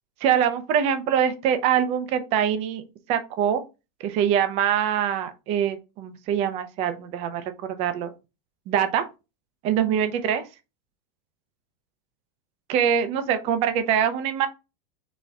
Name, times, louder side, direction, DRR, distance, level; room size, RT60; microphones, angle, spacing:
voice 1, 0.2-2.8 3.1-3.6 4.0-8.1 8.7-9.0 9.6-10.4 12.7-14.5, right 9 dB, 30° right, 10 dB, 0.6 m, -24 dB
4.2 x 3.5 x 3.4 m, 0.27 s
supercardioid pair, 170°, 21 cm